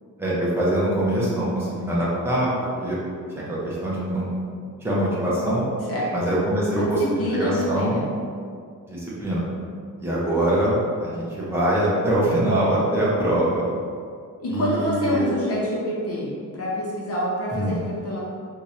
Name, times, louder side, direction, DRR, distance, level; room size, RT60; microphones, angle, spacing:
voice 1, 0.2-3.0 3.3-4.3 4.8-5.6 6.1-8.0 8.9-9.4 10.0-13.7 14.5-15.2 17.5-17.7, right 1 dB, 5° right, -8 dB, 0.8 m, -23 dB
voice 2, 6.8-8.1 14.4-18.2, equal, 45° left, -6 dB, 0.9 m, -27 dB
3.5 x 2.7 x 3.0 m, 2.2 s
wide cardioid pair, 170°, 33 cm